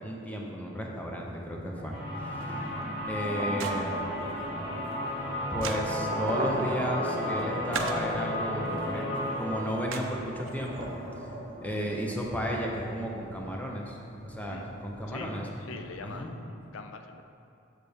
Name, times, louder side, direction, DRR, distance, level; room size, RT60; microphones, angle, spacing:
voice 1, 0.0-2.0 3.1-4.1 5.5-10.9 11.6-14.0 14.2-15.5 16.0-16.3, equal, 10° left, -1 dB, 0.7 m, -33 dB
sound 1, 1.2-16.2, right 1 dB, 45° right, 0.9 m, -40 dB
sound 2, 1.9-11.6, left 1 dB, 40° left, 1.7 m, -34 dB
sound 3, 2.1-11.2, right 5 dB, 75° right, 0.5 m, -44 dB
voice 2, 2.6-2.9 14.5-14.7 15.1-17.2, left 4 dB, 75° left, 6 dB, 0.5 m, -44 dB
6.6 x 6.4 x 3.5 m, 2.5 s
head